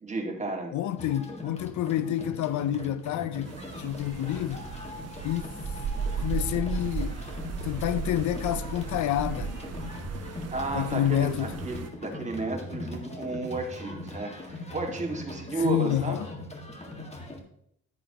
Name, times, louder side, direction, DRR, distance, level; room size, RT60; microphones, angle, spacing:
voice 1, 0.0-0.8 10.5-16.2, right 3 dB, 25° right, 2.0 m, -32 dB
voice 2, 0.7-4.7 5.2-5.5 6.2-7.2 7.6-9.6 10.7-11.5 15.5-16.3, left 12 dB, 75° left, 0.5 m, -29 dB
sound 1, 1.0-17.4, left 1 dB, 20° left, 1.8 m, -40 dB
sound 2, 3.4-11.9, right 5 dB, 55° right, 1.1 m, -36 dB
9.8 x 9.4 x 2.9 m
cardioid pair, 90°, 30 cm